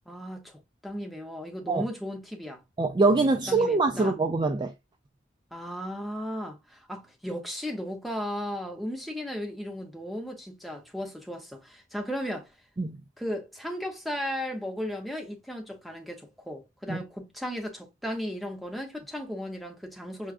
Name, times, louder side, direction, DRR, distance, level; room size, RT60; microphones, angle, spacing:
voice 1, 0.1-2.6 3.5-4.1 5.5-12.5 13.2-20.3, equal, ahead, 0.8 m, -35 dB
voice 2, 2.8-4.7 12.8-13.0 16.9-17.0, right 3 dB, 25° right, 0.3 m, -24 dB
5.9 x 2.3 x 2.4 m
head